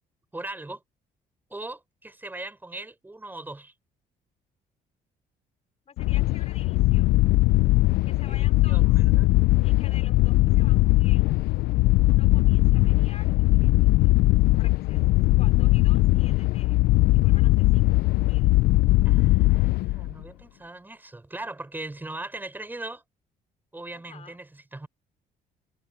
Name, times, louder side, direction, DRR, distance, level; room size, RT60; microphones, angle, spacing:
voice 1, 0.3-0.8 1.5-3.7 8.3-9.3 19.0-23.0 23.7-24.9, right 2 dB, 10° right, 6.4 m, -39 dB
voice 2, 5.9-7.2 8.0-8.9 9.6-11.3 12.0-15.0 15.4-16.8 17.1-18.5 23.9-24.4, left 7 dB, 45° left, 4.9 m, -50 dB
sound 1, 6.0-20.2, left 19 dB, 80° left, 0.5 m, -20 dB
cardioid pair, 110°, 16 cm